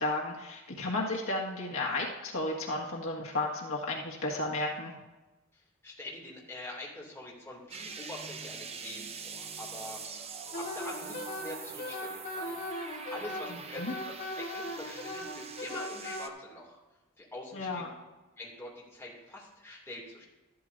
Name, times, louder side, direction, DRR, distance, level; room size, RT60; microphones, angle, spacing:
voice 1, 0.0-4.9 13.5-14.0 17.5-17.9, left 2 dB, 75° left, -2 dB, 1.8 m, -33 dB
voice 2, 5.8-10.3 10.5-12.6 13.1-13.9 14.3-16.8 17.2-17.9 18.4-20.2, left 1 dB, 10° left, -5 dB, 2.6 m, -45 dB
sound 1, 7.7-16.3, right 5 dB, 30° right, 0.7 m, -44 dB
Wind instrument woodwind instrument, 10.5-16.2, left 1 dB, 45° left, 3.2 m, -38 dB
13.0 x 12.5 x 2.7 m, 1.1 s
head